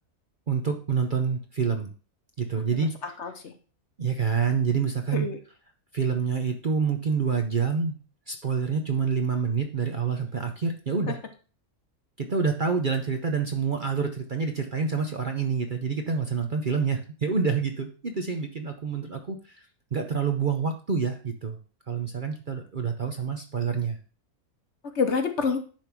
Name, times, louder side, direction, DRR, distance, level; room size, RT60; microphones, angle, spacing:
voice 1, 0.5-1.9 2.4-2.9 4.0-5.3 5.9-8.0 8.3-11.2 12.2-19.6 19.9-21.6 21.9-24.0, right 5 dB, 45° right, 5 dB, 0.8 m, -27 dB
voice 2, 2.7-3.5 5.1-5.4 11.1-11.2 24.8-25.6, left 5 dB, 55° left, 7 dB, 1.1 m, -28 dB
10.5 x 3.5 x 5.9 m, 0.38 s
omnidirectional pair, 1.6 m